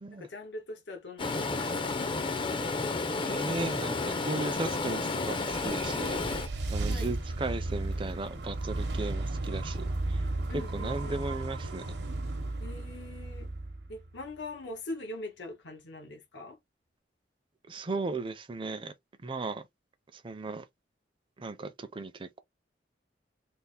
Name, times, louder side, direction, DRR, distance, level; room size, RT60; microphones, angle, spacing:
voice 1, 0.1-2.6 6.9-7.1 10.5-11.2 12.6-13.5 13.9-16.6, left 2 dB, 80° left, 1.0 m, -42 dB
Stream, 1.2-6.5, left 3 dB, 30° left, 0.5 m, -31 dB
voice 2, 3.3-6.2 6.7-10.2 10.5-11.9 17.7-18.9 19.2-19.6 20.1-20.6 21.4-22.4, right 3 dB, 30° right, 0.5 m, -36 dB
sound 1, 5.3-14.3, right 2 dB, 70° right, 0.8 m, -34 dB
3.4 x 2.0 x 4.1 m
head